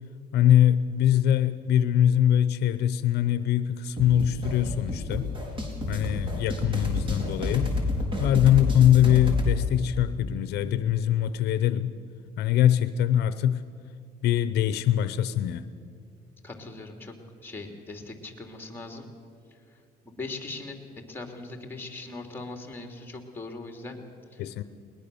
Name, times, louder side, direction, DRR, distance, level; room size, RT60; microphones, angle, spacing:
voice 1, 0.3-5.3 5.9-7.7 8.2-11.9 12.4-13.6 14.2-15.6 24.4-24.6, left 11 dB, 75° left, 12 dB, 0.7 m, -22 dB
sound 1, 4.0-9.6, left 2 dB, 30° right, 4.1 m, -29 dB
voice 2, 16.4-17.1 17.4-19.0 20.0-20.8 21.1-24.0 24.3-24.5, left 3 dB, 10° left, 3 dB, 3.0 m, -40 dB
21.0 x 20.0 x 7.0 m, 2.3 s
cardioid pair, 110°, 17 cm